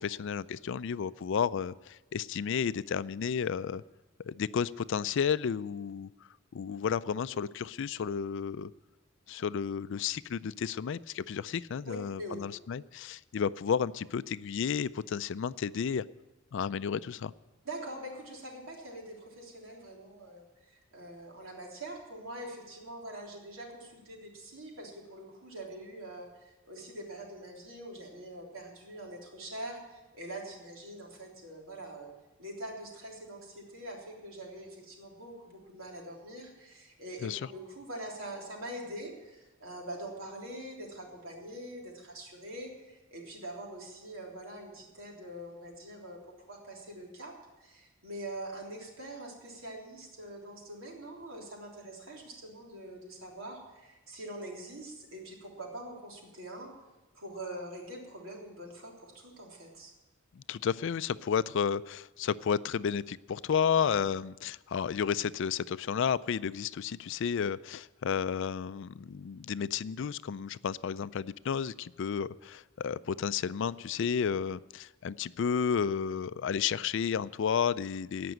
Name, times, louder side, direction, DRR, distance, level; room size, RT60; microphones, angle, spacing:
voice 1, 0.0-3.8 4.3-6.1 6.5-8.7 9.3-16.0 16.5-17.3 37.2-37.4 60.3-78.3, left 7 dB, 65° left, 17 dB, 0.4 m, -32 dB
voice 2, 11.8-12.4 17.6-32.1 32.4-56.7 57.1-59.9, right 1 dB, 85° right, -1 dB, 3.5 m, -44 dB
17.5 x 6.0 x 9.0 m, 1.1 s
head